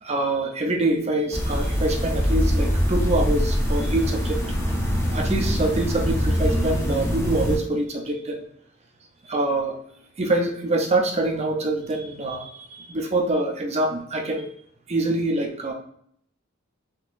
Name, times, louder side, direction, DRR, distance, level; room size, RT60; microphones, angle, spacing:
voice 1, 0.0-4.4 5.1-8.5 9.3-9.8 10.2-14.5 14.9-15.7, right 2 dB, 30° right, 1 dB, 0.6 m, -25 dB
sound 1, 1.3-7.6, equal, 10° left, 0.7 m, -23 dB
3.7 x 2.8 x 2.5 m, 0.65 s
head